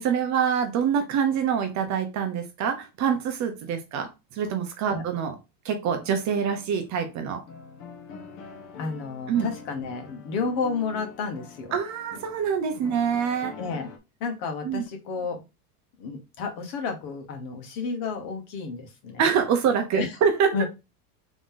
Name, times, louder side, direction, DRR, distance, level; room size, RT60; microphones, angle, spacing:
voice 1, 0.0-5.3 5.6-7.4 9.3-9.5 11.7-13.6 14.6-14.8 19.2-20.7, right 7 dB, 35° right, 6 dB, 0.8 m, -25 dB
sound 1, 6.0-14.0, left 5 dB, 30° left, 0.6 m, -45 dB
voice 2, 8.8-11.8 13.6-13.9 14.2-15.4 16.0-19.3 19.9-20.2 20.5-20.7, left 4 dB, 55° left, 5 dB, 1.4 m, -31 dB
3.8 x 3.0 x 3.7 m, 0.26 s
cardioid pair, 155°, 46 cm